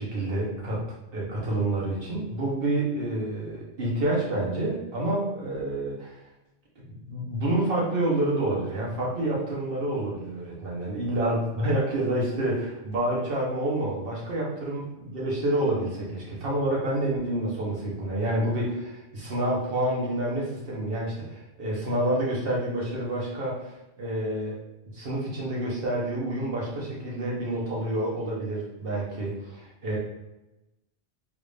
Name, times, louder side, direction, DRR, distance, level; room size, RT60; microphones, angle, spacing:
voice 1, 0.0-0.8 1.1-6.2 6.8-14.8 15.1-24.6 24.9-30.0, right 1 dB, 50° right, -4 dB, 1.2 m, -28 dB
3.6 x 2.5 x 3.3 m, 0.94 s
omnidirectional pair, 1.3 m